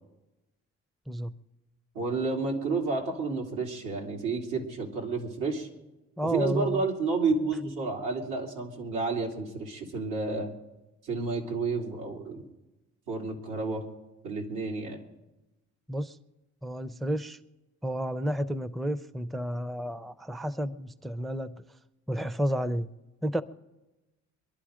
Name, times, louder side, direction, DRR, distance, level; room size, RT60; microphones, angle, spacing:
voice 1, 1.9-5.7 6.3-10.6 11.0-12.4 13.1-13.8 14.2-15.0, right 4 dB, 90° right, -1 dB, 2.7 m, -30 dB
voice 2, 6.2-6.8 15.9-16.2 16.6-17.4 17.8-21.6 22.1-22.9 23.2-23.4, equal, ahead, 14 dB, 0.5 m, -31 dB
23.5 x 11.5 x 5.0 m, 1.0 s
cardioid pair, 90°, 30 cm